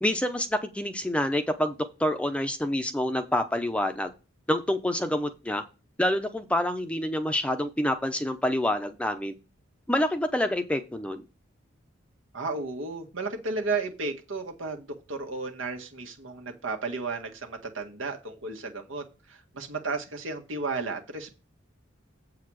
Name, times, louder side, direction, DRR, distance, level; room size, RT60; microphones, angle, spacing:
voice 1, 0.0-1.7 2.0-4.1 4.5-5.6 6.0-9.3 9.9-11.2, left 1 dB, 5° left, 7 dB, 0.7 m, -27 dB
voice 2, 12.3-21.3, right 3 dB, 75° right, 3 dB, 1.7 m, -33 dB
8.0 x 4.8 x 6.2 m, 0.30 s
head